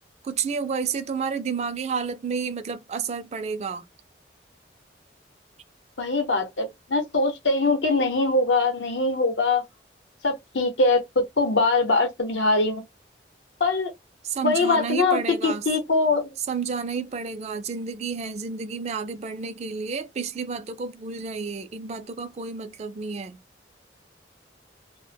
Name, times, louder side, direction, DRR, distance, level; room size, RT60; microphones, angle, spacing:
voice 1, 0.2-3.9 14.2-15.7 16.4-23.4, right 5 dB, 35° right, 0.3 m, -30 dB
voice 2, 6.0-9.6 10.2-11.0 11.4-12.8 13.6-13.9 14.4-16.3, left 3 dB, 85° left, 0.8 m, -22 dB
2.1 x 2.0 x 3.3 m
head